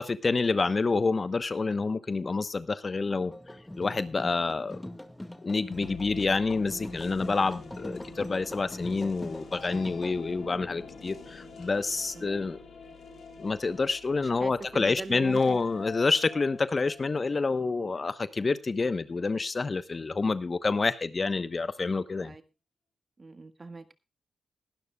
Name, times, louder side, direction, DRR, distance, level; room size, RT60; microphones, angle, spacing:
voice 1, 0.0-3.3 3.8-4.8 5.4-12.6 13.4-22.3, left 4 dB, 45° left, 14 dB, 1.0 m, -28 dB
sound 1, 3.3-10.1, left 1 dB, 10° left, 2.0 m, -42 dB
sound 2, 5.7-17.5, left 5 dB, 70° left, 3.3 m, -46 dB
voice 2, 14.2-15.6 22.2-22.4 23.2-23.9, right 3 dB, 40° right, 9 dB, 1.8 m, -42 dB
21.0 x 12.0 x 2.3 m, 0.26 s
supercardioid pair, 40°, 0 cm